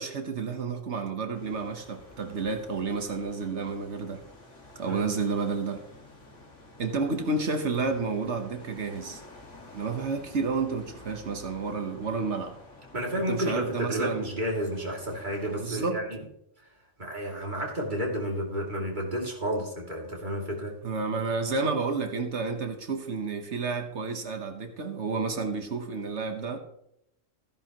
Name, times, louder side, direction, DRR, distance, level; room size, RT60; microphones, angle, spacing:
voice 1, 0.0-4.2 4.7-5.8 6.8-9.2 9.7-12.6 13.3-14.2 15.6-16.0 20.8-26.6, right 4 dB, 65° right, 6 dB, 1.4 m, -30 dB
sound 1, 1.3-15.6, left 2 dB, 75° left, 2.5 m, -50 dB
voice 2, 12.9-16.2 17.0-20.8, equal, 40° right, -2 dB, 2.9 m, -31 dB
15.0 x 10.5 x 3.0 m, 0.77 s
omnidirectional pair, 1.3 m